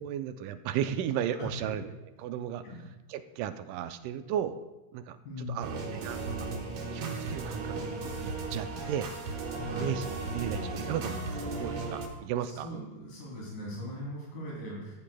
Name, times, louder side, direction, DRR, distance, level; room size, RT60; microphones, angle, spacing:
voice 1, 0.0-1.9 2.2-2.6 3.1-4.6 4.9-5.2 5.5-6.5 6.9-9.1 9.8-10.1 10.3-12.7, right 10 dB, 85° right, 10 dB, 2.1 m, -35 dB
voice 2, 1.3-1.7 2.6-2.8 5.2-6.0 9.6-9.9 12.6-14.9, left 1 dB, 70° left, -5 dB, 4.3 m, -39 dB
sound 1, 5.6-12.1, right 3 dB, 65° right, 2.3 m, -36 dB
14.5 x 8.3 x 2.2 m, 1.1 s
omnidirectional pair, 3.6 m